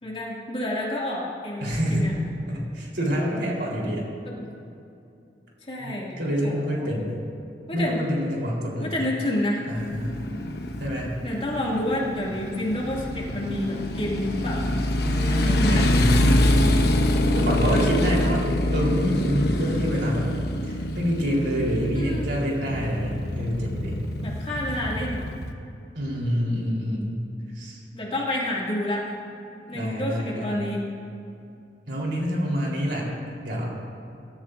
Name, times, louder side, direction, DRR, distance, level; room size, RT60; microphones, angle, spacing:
voice 1, 0.0-2.1 4.2-4.5 5.6-6.2 6.4-6.9 7.7-8.0 8.8-9.7 11.2-14.8 15.3-15.9 18.7-18.8 21.9-22.3 24.2-25.3 27.9-29.0 29.7-30.8, left 1 dB, 35° left, -4 dB, 2.3 m, -29 dB
voice 2, 1.6-2.1 2.5-4.1 5.8-7.1 7.7-8.9 9.7-10.2 10.8-11.1 15.0-16.9 17.3-18.4 18.7-20.3 20.6-24.0 25.9-27.1 27.5-27.8 29.7-30.6 31.9-33.1 33.4-33.7, equal, 70° right, -3 dB, 3.8 m, -27 dB
Motorcycle, 9.8-25.5, left 1 dB, 65° left, 1.0 m, -25 dB
23.0 x 13.0 x 2.6 m, 2.6 s
head